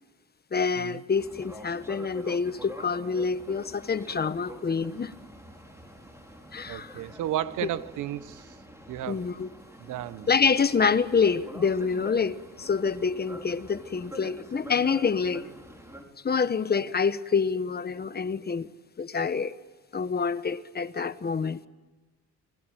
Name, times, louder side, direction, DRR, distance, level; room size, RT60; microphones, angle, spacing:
voice 1, 0.5-5.1 6.5-6.9 9.1-9.5 10.3-15.4 16.2-18.7 19.0-19.5 19.9-21.6, left 5 dB, 30° left, 1.3 m, -27 dB
Boat Water vehicle, 1.1-16.0, equal, 10° right, 5.2 m, -46 dB
voice 2, 6.7-8.6 8.9-9.3 9.8-10.3, right 12 dB, 90° right, 1.2 m, -33 dB
27.5 x 20.5 x 9.2 m
cardioid pair, 90°, 30 cm